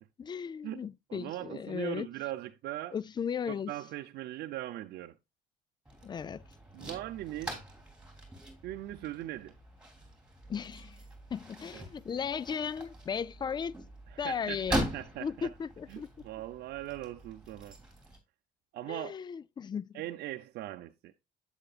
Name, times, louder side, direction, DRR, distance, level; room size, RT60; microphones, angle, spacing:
voice 1, 0.2-2.1 2.9-3.7 6.0-6.4 10.5-11.0 11.3-13.8 14.2-14.9 15.2-16.1 18.9-20.0, left 7 dB, 25° left, 0.4 m, -36 dB
voice 2, 1.1-3.0 3.5-5.2 6.7-7.6 8.6-9.5 11.7-11.8 14.1-15.5 15.9-17.8 18.7-19.2 19.9-21.1, right 14 dB, 75° right, 0.7 m, -40 dB
sound 1, 5.9-18.2, right 1 dB, 5° right, 3.1 m, -42 dB
8.1 x 7.7 x 2.4 m
cardioid pair, 110°, 17 cm